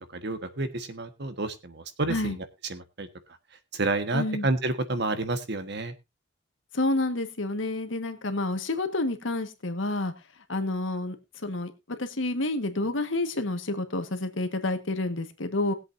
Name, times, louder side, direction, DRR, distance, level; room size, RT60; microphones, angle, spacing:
voice 1, 0.0-3.1 3.7-5.9, right 2 dB, 60° right, 10 dB, 1.3 m, -30 dB
voice 2, 4.1-4.5 6.7-10.1 10.5-11.2 11.4-15.7, left 2 dB, 80° left, 8 dB, 1.5 m, -29 dB
20.5 x 7.8 x 2.6 m, 0.23 s
head